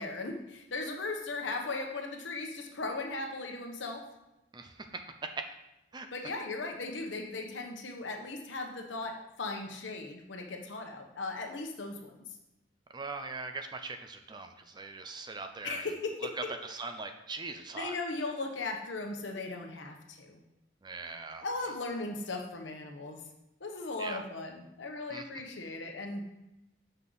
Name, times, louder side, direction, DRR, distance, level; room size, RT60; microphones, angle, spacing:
voice 1, 0.0-4.0 6.1-12.2 15.6-16.3 17.7-20.4 21.4-23.2 23.6-26.2, left 3 dB, 80° left, 3 dB, 1.0 m, -37 dB
voice 2, 4.5-5.4 5.9-6.1 12.9-15.9 16.5-18.0 20.8-21.5 24.0-24.2 25.1-25.2, right 3 dB, 25° right, 6 dB, 0.4 m, -41 dB
6.2 x 5.5 x 3.9 m, 0.92 s
head